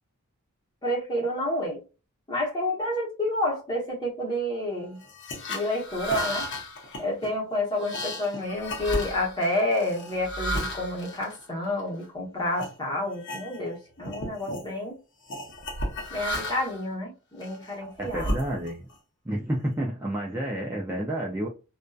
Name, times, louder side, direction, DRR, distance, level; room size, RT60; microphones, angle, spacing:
voice 1, 0.8-1.8 2.3-5.0 5.5-6.5 7.0-14.9 16.1-18.3, left 1 dB, 20° left, -2 dB, 0.8 m, -29 dB
sound 1, 5.0-12.1 12.6-12.7 13.1-13.8 14.0-14.7 15.3-16.8 17.4-18.9, equal, 55° left, 0.7 m, -34 dB
voice 2, 18.0-18.8 19.3-21.5, right 1 dB, 10° right, -3 dB, 0.3 m, -30 dB
2.6 x 2.2 x 2.2 m, 0.32 s
head